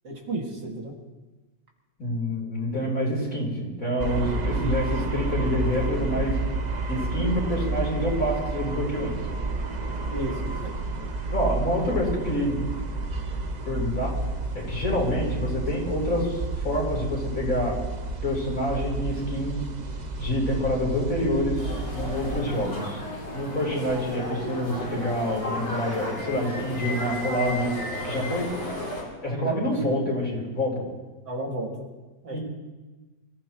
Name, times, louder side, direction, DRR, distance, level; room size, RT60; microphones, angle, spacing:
voice 1, 0.0-0.9 4.6-4.8 10.1-10.7 29.3-29.6 31.3-31.7 32.2-32.4, right 1 dB, 75° right, -1 dB, 3.0 m, -32 dB
voice 2, 2.0-6.4 6.9-9.2 11.3-12.7 13.7-14.1 14.5-17.8 18.2-19.6 20.2-23.0 23.3-27.8 28.0-28.5 29.2-30.8 32.3-32.4, equal, 50° left, -3 dB, 4.2 m, -27 dB
sound 1, 4.0-22.4, right 3 dB, 35° right, 0.7 m, -30 dB
sound 2, 21.6-29.0, left 1 dB, 70° left, 4.8 m, -34 dB
26.5 x 15.0 x 3.1 m, 1.2 s
omnidirectional pair, 1.9 m